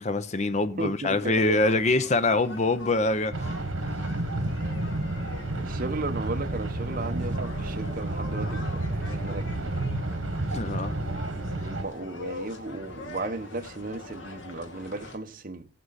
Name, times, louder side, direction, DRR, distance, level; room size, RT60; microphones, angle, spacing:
voice 1, 0.0-3.5 10.5-10.9, left 2 dB, 35° left, 0.7 m, -24 dB
voice 2, 0.8-1.6 5.6-9.7 11.6-15.7, right 2 dB, 45° right, 1.1 m, -35 dB
sound 1, 1.2-15.2, left 2 dB, 70° left, 2.1 m, -43 dB
sound 2, 3.3-11.8, right 2 dB, 80° right, 1.5 m, -30 dB
17.0 x 8.0 x 4.1 m
head